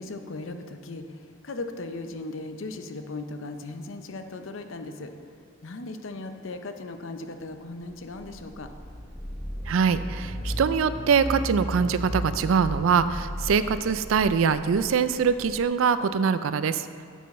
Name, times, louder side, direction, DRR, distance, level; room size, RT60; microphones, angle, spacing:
voice 1, 0.0-5.1 5.6-8.7, left 2 dB, 70° left, 7 dB, 0.7 m, -37 dB
sound 1, 7.8-15.6, equal, 10° left, 1.0 m, -35 dB
voice 2, 9.7-17.1, right 6 dB, 80° right, 13 dB, 0.4 m, -23 dB
9.4 x 7.4 x 4.2 m, 2.3 s
head